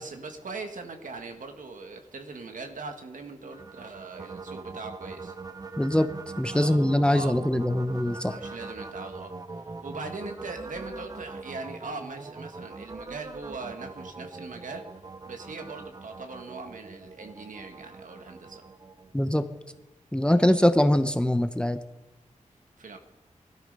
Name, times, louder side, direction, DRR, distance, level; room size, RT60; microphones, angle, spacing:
voice 1, 0.0-5.4 6.5-7.4 8.3-14.9 15.3-18.6 20.3-20.5 22.8-23.0, right 3 dB, 85° right, 5 dB, 1.8 m, -40 dB
sound 1, 3.5-19.7, right 3 dB, 30° right, 0.6 m, -42 dB
voice 2, 5.8-6.1 6.4-8.3 19.1-19.4 20.1-21.8, left 1 dB, 5° left, 9 dB, 0.7 m, -23 dB
20.0 x 12.5 x 5.4 m, 1.0 s
wide cardioid pair, 125°, 13 cm